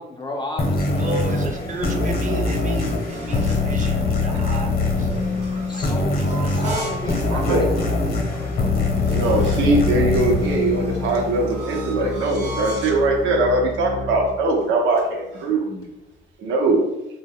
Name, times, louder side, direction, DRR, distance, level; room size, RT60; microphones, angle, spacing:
voice 1, 0.0-1.6 5.7-8.5 12.0-12.1, left 1 dB, 20° left, 2 dB, 0.4 m, -33 dB
sound 1, 0.6-11.8, left 3 dB, 50° left, 0.8 m, -23 dB
voice 2, 1.0-4.7 5.1-5.7 6.4-6.8, right 2 dB, 40° right, 4 dB, 0.5 m, -33 dB
sound 2, 2.5-3.7 5.0-7.1 7.5-7.6 8.2-8.3 8.5-9.9 10.8-13.1 13.7-14.0 14.3-15.6, right 1 dB, 60° right, 1.0 m, -38 dB
Organ, 6.6-14.6 15.1-15.2 15.8-15.9, left 3 dB, 90° left, 0.6 m, -32 dB
voice 3, 7.3-7.6 9.1-15.9 16.4-16.9, right 2 dB, 80° right, 0 dB, 0.7 m, -21 dB
2.2 x 2.1 x 3.5 m, 0.97 s
cardioid pair, 90°, 20 cm